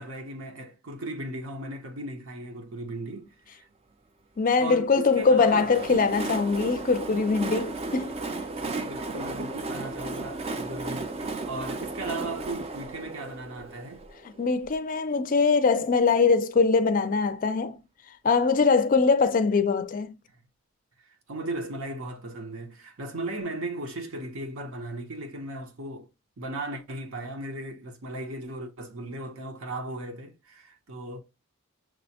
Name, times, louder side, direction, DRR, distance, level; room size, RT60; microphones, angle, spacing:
voice 1, 0.0-3.7 4.6-5.7 8.6-14.0 21.1-26.1 26.4-31.2, right 2 dB, 70° right, 0.8 m, -36 dB
voice 2, 4.4-8.1 14.4-17.8 18.2-20.2, left 4 dB, 40° left, 0.4 m, -22 dB
Train, 5.1-14.7, right 3 dB, 30° right, 0.4 m, -35 dB
6.1 x 2.1 x 2.7 m
head